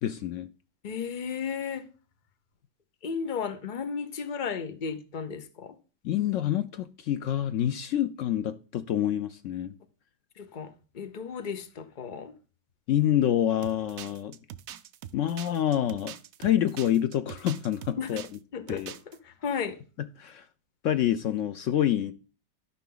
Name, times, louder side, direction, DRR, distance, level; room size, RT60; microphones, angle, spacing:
voice 1, 0.0-0.5 6.0-9.7 12.9-14.4 15.1-16.1 16.4-18.2 18.7-18.9 20.2-20.5 20.8-22.1, left 11 dB, 85° left, 0.6 m, -27 dB
voice 2, 0.8-1.9 3.0-5.7 10.4-12.3 18.0-18.1 18.5-18.8 19.3-19.8, left 6 dB, 35° left, 0.8 m, -34 dB
sound 1, 13.6-18.4 18.7-19.2, right 11 dB, 65° right, 0.9 m, -43 dB
12.0 x 5.7 x 3.9 m
omnidirectional pair, 1.9 m